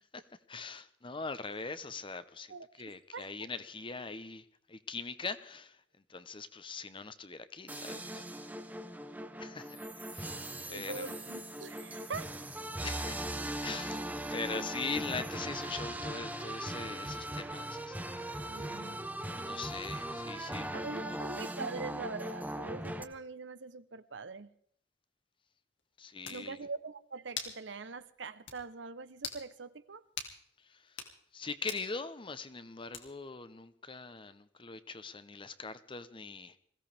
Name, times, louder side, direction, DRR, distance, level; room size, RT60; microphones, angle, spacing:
voice 1, 0.1-5.8 6.1-8.5 9.4-9.8 10.1-11.1 12.8-14.0 14.3-18.6 19.3-21.2 26.0-26.6 30.6-36.6, left 4 dB, 30° left, 0.9 m, -42 dB
voice 2, 2.5-3.3 10.6-12.3 18.5-19.0 20.7-24.5 26.3-30.0, right 4 dB, 80° right, 0.9 m, -43 dB
sound 1, 7.7-23.0, right 1 dB, 10° right, 1.1 m, -39 dB
sound 2, 25.8-25.9 26.2-26.4 27.4-27.6 28.0-28.1 28.5-28.6 29.2-29.4 30.2-30.4 30.9-31.1 31.7-31.9 32.9-33.3, left 6 dB, 85° left, 2.6 m, -41 dB
21.5 x 16.5 x 3.5 m
head